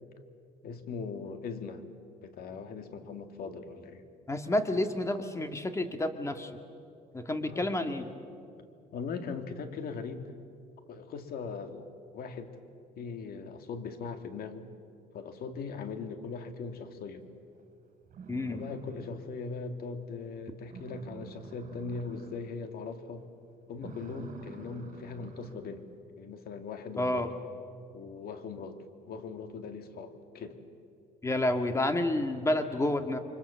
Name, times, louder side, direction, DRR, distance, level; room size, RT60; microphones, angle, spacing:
voice 1, 0.6-1.9 2.2-4.0 4.5-4.8 7.5-7.6 8.9-10.3 10.9-11.9 12.1-12.6 13.0-14.7 15.1-17.3 18.5-23.2 23.7-25.9 26.2-27.3 27.9-28.8 29.1-30.6, left 5 dB, 65° left, 7 dB, 2.3 m, -40 dB
voice 2, 4.3-6.5 7.1-8.1 18.3-18.6 27.0-27.3 31.2-33.2, left 1 dB, 15° left, 7 dB, 2.0 m, -29 dB
sound 1, 17.6-17.7 18.1-19.5 19.8-19.9 20.3-20.4 20.6-22.6 22.9-23.2 23.7-25.7, right 5 dB, 50° right, 5.4 m, -48 dB
30.0 x 24.0 x 7.0 m, 2.5 s
cardioid pair, 110°, 17 cm